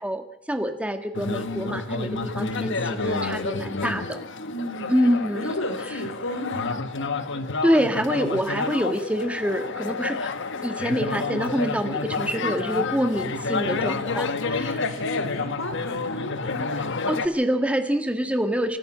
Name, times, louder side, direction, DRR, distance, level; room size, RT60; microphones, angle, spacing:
voice 1, 0.0-4.2 4.9-5.5 7.6-10.3 10.6-14.9 17.1-18.8, equal, 5° right, 7 dB, 1.7 m, -26 dB
sound 1, 1.1-17.3, left 3 dB, 65° left, 1.5 m, -29 dB
voice 2, 4.5-5.0 5.3-6.8 14.2-16.7, left 1 dB, 80° left, 6 dB, 4.2 m, -34 dB
26.0 x 13.5 x 7.5 m, 0.70 s
head